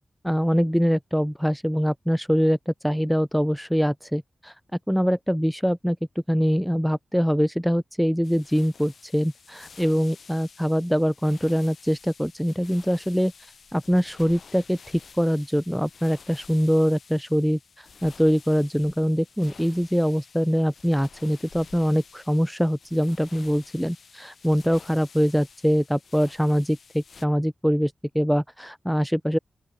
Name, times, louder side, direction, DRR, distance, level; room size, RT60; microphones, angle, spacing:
voice 1, 0.2-4.6 4.9-6.0 6.3-29.4, equal, ahead, 0.3 m, -23 dB
sound 1, 8.2-27.3, left 5 dB, 65° left, 6.7 m, -50 dB
open air
wide cardioid pair, 125°, 0 cm